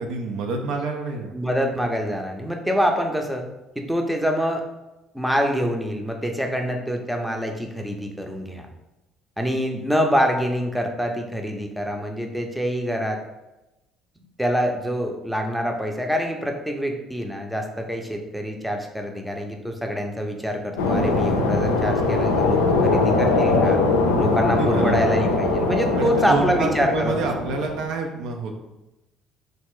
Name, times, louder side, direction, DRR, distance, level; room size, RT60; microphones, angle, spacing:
voice 1, 0.0-1.3 24.3-25.0 25.9-28.5, right 3 dB, 70° right, 2 dB, 0.4 m, -28 dB
voice 2, 1.3-3.5 3.8-4.6 5.1-8.7 9.4-13.2 14.4-23.8 24.2-27.2, equal, 5° right, 2 dB, 0.6 m, -25 dB
sound 1, 20.8-27.8, left 3 dB, 85° left, 0.4 m, -21 dB
3.2 x 2.4 x 3.6 m, 0.97 s
hypercardioid pair, 55°, 0 cm